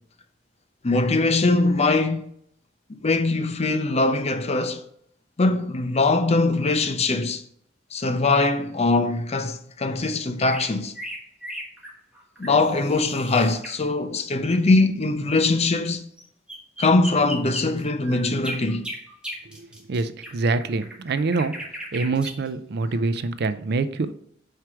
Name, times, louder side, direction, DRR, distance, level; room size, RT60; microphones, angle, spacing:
voice 1, 0.8-2.3 3.0-4.8 5.4-7.4 7.9-10.9 12.4-16.0 16.8-18.9, left 3 dB, 35° left, 0.6 m, -22 dB
sound 1, 10.4-13.8 16.2-16.3 16.5-22.5, equal, 5° right, 1.3 m, -36 dB
voice 2, 19.6-21.6 21.9-24.1, right 3 dB, 60° right, 0.5 m, -25 dB
4.8 x 4.5 x 5.9 m
head